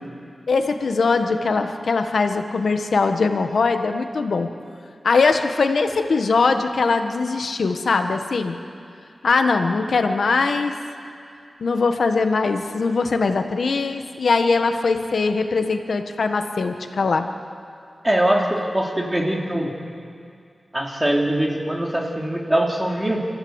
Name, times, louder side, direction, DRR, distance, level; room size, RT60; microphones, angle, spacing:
voice 1, 0.5-4.5 5.0-8.6 9.2-10.7 11.6-17.3, left 4 dB, 80° left, 6 dB, 1.4 m, -21 dB
voice 2, 18.0-19.7 20.7-23.3, right 1 dB, 15° right, -1 dB, 3.1 m, -22 dB
27.5 x 15.0 x 8.1 m, 2.4 s
wide cardioid pair, 105°, 0 cm